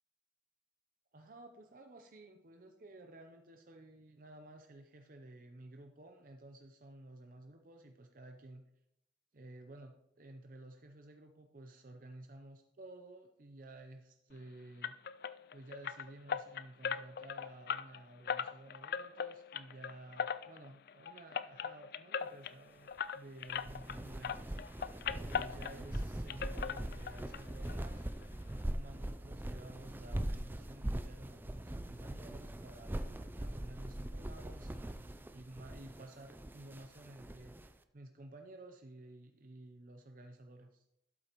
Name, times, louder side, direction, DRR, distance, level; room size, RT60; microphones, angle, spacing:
voice 1, 1.1-8.6 9.3-15.0 15.5-24.5 25.2-28.0 28.6-40.8, right 1 dB, 50° right, 5 dB, 0.7 m, -53 dB
sound 1, 14.8-24.0 24.2-26.0 26.3-27.4 27.7-27.8 28.2-28.3 28.6-28.7, left 7 dB, 60° left, 0.3 m, -40 dB
sound 2, 23.5-37.7, right 1 dB, 10° right, 0.4 m, -42 dB
12.0 x 8.1 x 3.0 m, 0.79 s
head